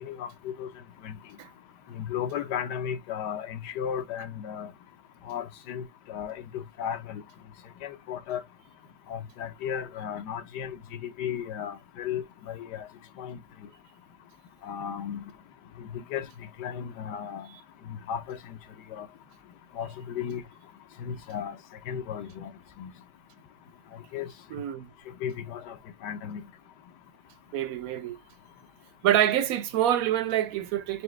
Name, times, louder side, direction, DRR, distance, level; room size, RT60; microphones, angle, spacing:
voice 1, 0.0-0.7 1.0-1.1 1.9-4.7 5.3-7.2 7.8-8.4 9.1-12.8 13.2-13.4 14.6-15.2 15.9-16.3 16.6-17.5 17.9-18.6 18.9-19.1 19.7-20.4 21.0-21.6 21.9-22.5 22.8-22.9 24.1-24.3 25.2-25.8 26.0-26.4, left 8 dB, 75° left, 1.3 m, -35 dB
voice 2, 24.5-24.9 27.5-28.2 29.0-31.0, right 11 dB, 65° right, 1.0 m, -26 dB
4.9 x 2.6 x 3.1 m
omnidirectional pair, 1.8 m